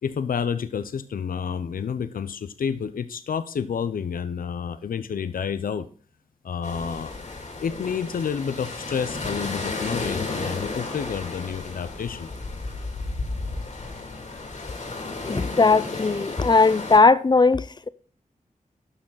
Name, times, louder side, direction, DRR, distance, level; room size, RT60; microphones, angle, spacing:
voice 1, 0.0-5.9 6.4-7.1 7.6-12.3, left 7 dB, 85° left, 0.7 m, -29 dB
sound 1, 6.6-17.0, left 3 dB, 55° left, 2.7 m, -33 dB
voice 2, 15.2-17.9, left 4 dB, 30° left, 0.5 m, -18 dB
11.5 x 6.1 x 4.0 m
wide cardioid pair, 90°, 14 cm